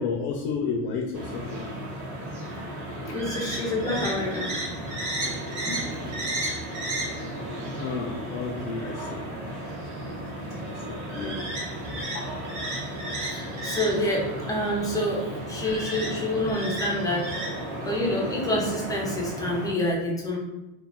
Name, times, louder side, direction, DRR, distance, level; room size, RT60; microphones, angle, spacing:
voice 1, 0.0-1.7 3.0-3.1 7.8-9.2 10.6-10.8 12.1-12.3, left 4 dB, 85° left, 1 dB, 0.5 m, -31 dB
sound 1, 1.1-19.7, right 1 dB, 75° right, 1.0 m, -33 dB
voice 2, 3.0-4.6 5.7-5.8 11.1-11.4 11.8-12.0 13.2-17.3 17.8-20.4, left 1 dB, 10° left, -3 dB, 0.5 m, -28 dB
2.3 x 2.3 x 3.4 m, 1.0 s
cardioid pair, 150°, 34 cm